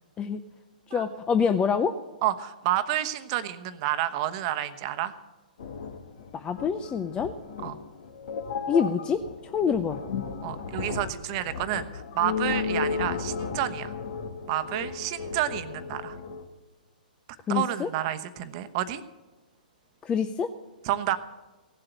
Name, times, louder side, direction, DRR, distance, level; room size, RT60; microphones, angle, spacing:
voice 1, 0.9-1.9 6.3-7.3 8.7-9.3 9.5-10.0 17.5-17.9 20.0-20.5, left 6 dB, 20° left, 10 dB, 0.6 m, -26 dB
voice 2, 2.2-5.1 7.6-7.7 10.4-13.9 14.5-16.2 17.5-19.0 20.8-21.2, right 12 dB, 40° right, 10 dB, 1.0 m, -29 dB
sound 1, 5.6-16.4, left 5 dB, 60° left, 1.8 m, -34 dB
17.0 x 7.8 x 8.1 m, 1.1 s
hypercardioid pair, 125°, 5 cm